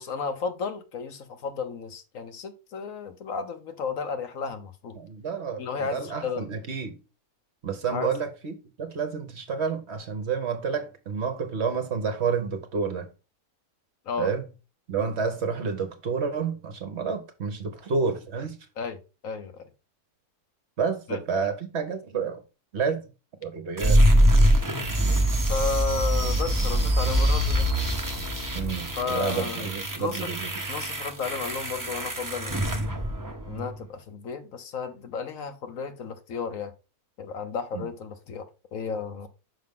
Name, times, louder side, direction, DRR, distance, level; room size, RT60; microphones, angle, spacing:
voice 1, 0.0-5.0 5.6-6.5 7.9-8.2 14.1-14.3 18.8-19.7 21.1-21.2 25.5-27.7 29.0-29.7 30.0-30.3 30.7-32.8 33.5-36.7 37.2-39.3, left 5 dB, 65° left, 1.2 m, -33 dB
voice 2, 5.0-5.6 5.9-7.0 7.6-8.5 8.8-13.1 14.2-14.4 14.9-18.6 20.8-22.4 22.7-23.0 23.4-24.0 28.5-30.5 37.7-37.9, right 5 dB, 50° right, 1.1 m, -29 dB
sound 1, 23.8-33.7, equal, 15° right, 0.8 m, -24 dB
5.9 x 5.3 x 3.6 m
omnidirectional pair, 1.6 m